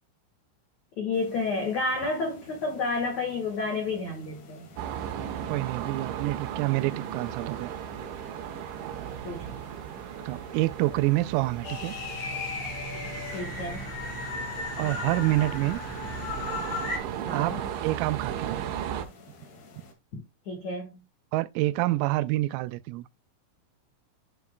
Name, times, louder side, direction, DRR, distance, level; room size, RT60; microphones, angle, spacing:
voice 1, 1.0-4.7 9.2-9.5 13.3-13.9 17.3-17.6 20.1-20.9, left 3 dB, 75° left, 1.6 m, -30 dB
sound 1, 1.1-19.9, left 3 dB, 60° left, 3.9 m, -51 dB
sound 2, 4.8-19.1, right 10 dB, 75° right, 3.2 m, -36 dB
voice 2, 5.5-7.7 10.2-12.0 14.8-15.8 17.3-18.6 21.3-23.1, right 18 dB, 90° right, 3.3 m, -27 dB
sound 3, 11.6-17.0, left 4 dB, 40° left, 3.4 m, -35 dB
11.5 x 6.1 x 2.3 m
omnidirectional pair, 5.9 m